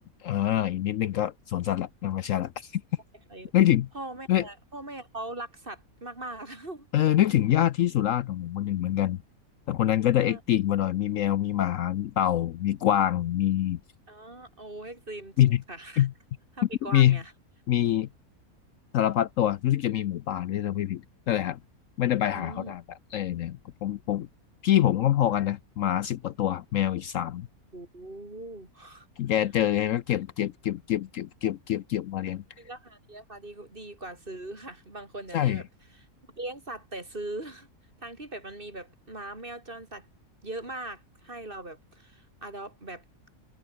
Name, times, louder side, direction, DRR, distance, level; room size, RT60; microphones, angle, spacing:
voice 1, 0.0-2.8 3.5-3.9 4.3-4.4 6.9-9.2 9.7-13.8 15.4-15.6 16.0-16.1 16.9-17.2 17.7-18.1 18.9-21.6 22.0-24.3 24.6-27.5 29.2-32.4 35.3-35.6, left 12 dB, 65° left, 0.9 m, -25 dB
voice 2, 3.9-6.9 10.2-10.4 14.1-16.1 16.5-17.3 22.3-22.7 27.7-29.1 32.6-35.6 36.4-37.7 38.0-40.1 40.4-43.0, right 2 dB, 35° right, 4.4 m, -40 dB
omnidirectional pair, 1.6 m